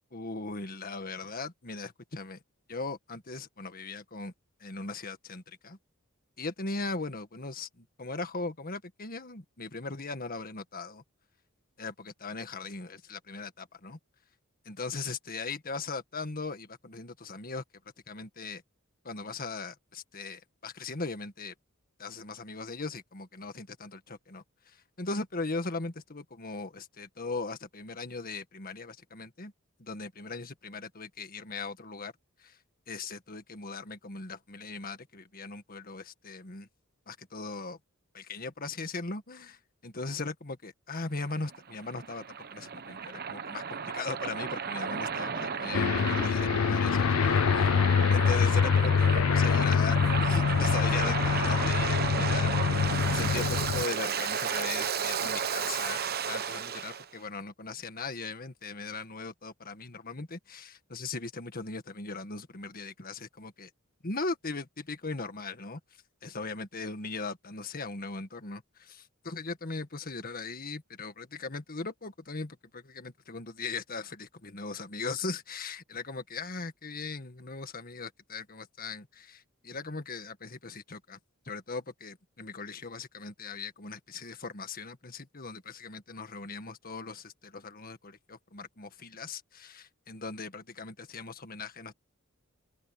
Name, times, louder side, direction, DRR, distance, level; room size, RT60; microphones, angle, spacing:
voice 1, 0.1-2.4 2.7-4.3 4.6-5.8 6.4-11.0 11.8-14.0 14.7-17.6 18.1-18.6 19.0-21.5 22.0-29.5 29.8-32.1 32.4-32.6 32.9-36.7 37.1-37.8 38.1-47.7 48.1-52.8 53.1-63.7 64.0-65.8 66.2-81.2 81.5-91.9, left 3 dB, 45° left, 1.7 m, -39 dB
Waves surf, 41.3-57.0, right 6 dB, 50° right, 1.0 m, -33 dB
Aircraft, 45.7-53.8, left 6 dB, 75° left, 0.4 m, -25 dB
open air
head